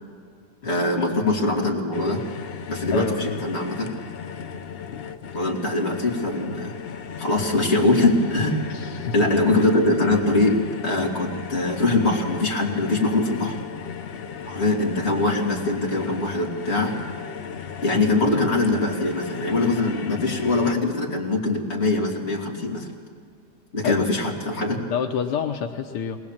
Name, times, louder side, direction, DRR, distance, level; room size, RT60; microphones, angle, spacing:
voice 1, 0.6-2.2 2.7-3.9 5.3-6.8 7.2-8.8 9.1-10.6 10.8-13.6 14.5-17.0 17.8-22.9 23.7-24.8, left 2 dB, 40° left, -1 dB, 2.8 m, -22 dB
sound 1, 1.9-20.7, left 7 dB, 60° left, 0.6 m, -36 dB
voice 2, 2.9-3.4 8.7-9.3 23.8-24.0 24.9-26.2, left 7 dB, 85° left, 4 dB, 1.5 m, -28 dB
20.5 x 19.5 x 7.3 m, 2.2 s
omnidirectional pair, 1.8 m